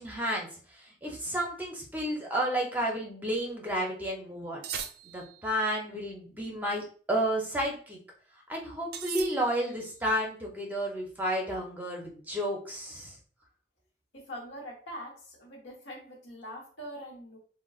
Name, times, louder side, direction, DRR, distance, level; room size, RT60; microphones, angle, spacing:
voice 1, 0.0-4.6 5.1-8.0 8.5-13.2, right 1 dB, 10° right, -1 dB, 0.6 m, -32 dB
sound 1, 4.6-5.5 8.9-9.9, right 7 dB, 60° right, 0.4 m, -39 dB
voice 2, 14.1-17.4, equal, 85° left, -1 dB, 1.1 m, -43 dB
3.7 x 2.1 x 2.3 m, 0.44 s
head